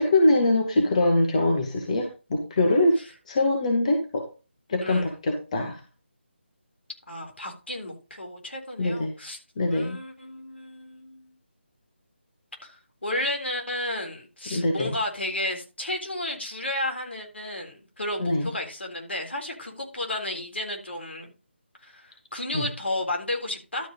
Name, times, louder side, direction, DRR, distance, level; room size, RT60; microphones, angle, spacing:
voice 1, 0.0-3.0 3.3-4.3 4.7-5.8 8.8-9.1 9.6-10.0 14.5-15.0 18.2-18.5 22.5-22.6, left 2 dB, 35° left, 2 dB, 2.0 m, -23 dB
voice 2, 7.1-9.4 9.7-11.3 12.6-21.3 21.8-23.9, left 1 dB, 70° left, 2 dB, 3.8 m, -32 dB
12.5 x 4.6 x 5.4 m, 0.31 s
figure-of-eight pair, 155°, 6 cm